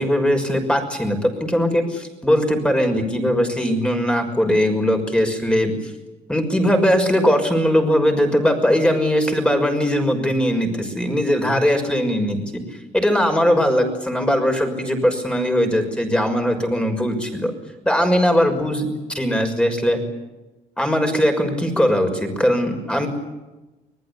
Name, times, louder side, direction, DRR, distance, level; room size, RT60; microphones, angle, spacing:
voice 1, 0.0-5.7 6.3-12.6 12.9-17.5 17.8-18.9 19.1-20.0 20.8-23.1, equal, 5° left, 5 dB, 6.2 m, -20 dB
25.5 x 20.5 x 8.7 m, 1.1 s
cardioid pair, 110°, 17 cm